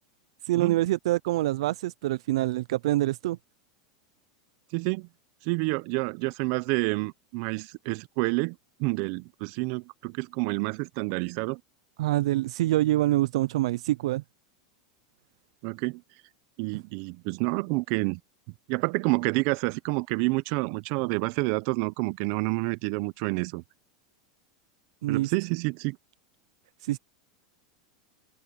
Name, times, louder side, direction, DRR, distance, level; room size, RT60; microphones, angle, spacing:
voice 1, 0.4-3.4 12.0-14.2 25.0-25.3 26.8-27.0, right 16 dB, 75° right, 0.5 m, -25 dB
voice 2, 4.7-5.1 5.4-11.6 15.6-16.0 16.6-18.2 18.7-23.6 25.1-26.0, right 27 dB, 60° right, 0.9 m, -28 dB
open air
hypercardioid pair, 105°, 3 cm